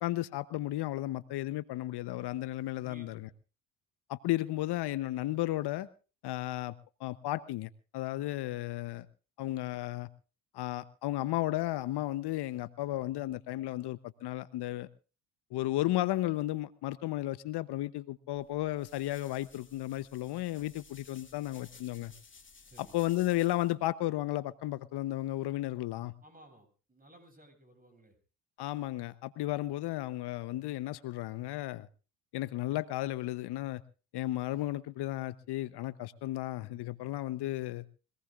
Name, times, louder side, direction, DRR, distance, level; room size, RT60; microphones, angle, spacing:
voice 1, 0.0-3.3 4.1-5.9 6.2-6.7 7.0-9.1 9.4-10.1 10.5-14.9 15.5-22.1 22.8-26.1 28.6-31.9 32.3-33.8 34.1-37.8, left 16 dB, 60° left, 15 dB, 0.9 m, -34 dB
voice 2, 2.8-3.3 22.7-23.0 26.2-28.2, right 1 dB, 20° right, 5 dB, 7.4 m, -57 dB
sound 1, 18.4-23.7, left 4 dB, 25° left, 2.5 m, -57 dB
24.0 x 18.5 x 2.5 m, 0.35 s
hypercardioid pair, 65°, 46 cm